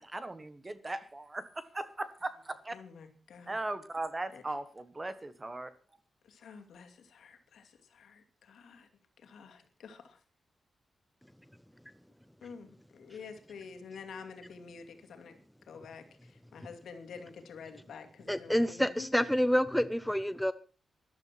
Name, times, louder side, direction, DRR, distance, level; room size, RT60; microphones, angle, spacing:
voice 1, 0.0-2.7 3.5-5.7, right 2 dB, 20° right, 13 dB, 1.4 m, -38 dB
voice 2, 2.7-3.6 4.3-4.4 6.2-8.9 9.2-10.2 12.4-15.4 15.7-19.2, left 5 dB, 80° left, 6 dB, 2.5 m, -49 dB
voice 3, 18.3-20.5, equal, ahead, 13 dB, 0.6 m, -28 dB
13.5 x 12.0 x 6.0 m, 0.38 s
wide cardioid pair, 145°, 0 cm